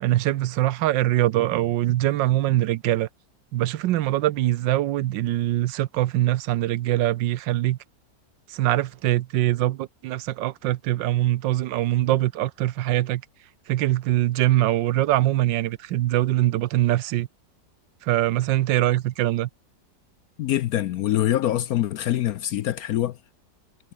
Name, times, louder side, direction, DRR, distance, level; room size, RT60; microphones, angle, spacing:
voice 1, 0.0-3.1 3.5-7.8 8.5-13.2 13.7-17.3 18.0-19.5, right 15 dB, 85° right, 1.4 m, -23 dB
voice 2, 20.4-23.2, left 13 dB, 70° left, 0.9 m, -24 dB
omnidirectional pair, 1.9 m